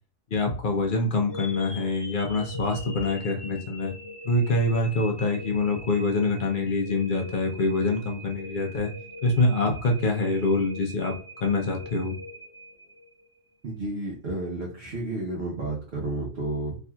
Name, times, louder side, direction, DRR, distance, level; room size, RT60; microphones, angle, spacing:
voice 1, 0.3-3.9 4.2-8.9 9.2-11.1 11.4-12.1, left 2 dB, 50° left, 2 dB, 0.6 m, -25 dB
sound 1, 1.3-13.4, left 1 dB, 25° left, 0.9 m, -42 dB
voice 2, 13.6-16.8, right 2 dB, 55° right, -4 dB, 0.9 m, -31 dB
3.4 x 2.7 x 2.2 m, 0.40 s
omnidirectional pair, 1.4 m